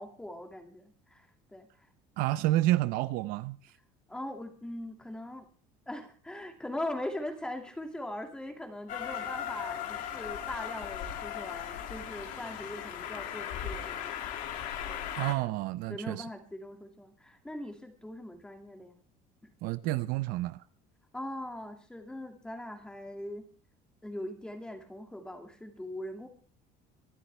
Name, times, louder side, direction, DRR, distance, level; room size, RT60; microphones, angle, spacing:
voice 1, 0.0-1.7 4.1-5.5 5.9-14.3 14.9-15.1 15.9-19.0 19.4-19.5 21.1-23.5 24.0-26.3, left 1 dB, 5° left, 2.2 m, -41 dB
voice 2, 2.2-3.7 15.2-16.3 19.6-20.6, right 16 dB, 65° right, 0.7 m, -29 dB
Train, 8.9-15.3, left 9 dB, 55° left, 2.4 m, -37 dB
24.5 x 12.0 x 3.3 m
cardioid pair, 175°, 16 cm